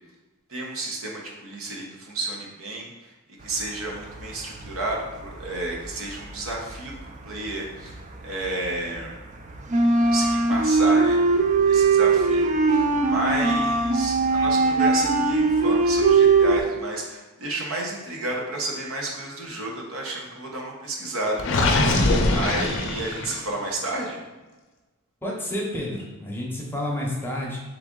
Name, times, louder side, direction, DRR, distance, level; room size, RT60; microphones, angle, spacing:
voice 1, 0.5-3.1 3.4-9.1 10.0-11.4 11.7-22.0 22.3-24.2, right 2 dB, 80° right, -1 dB, 0.9 m, -31 dB
sound 1, 3.9-4.8 5.2-8.1 8.4-16.6, right 4 dB, 35° right, 0.4 m, -20 dB
Gurgling, 21.4-23.5, left 2 dB, 60° left, 0.5 m, -22 dB
voice 2, 25.2-27.6, left 1 dB, 10° left, -3 dB, 0.7 m, -30 dB
3.5 x 3.3 x 3.7 m, 1.2 s
head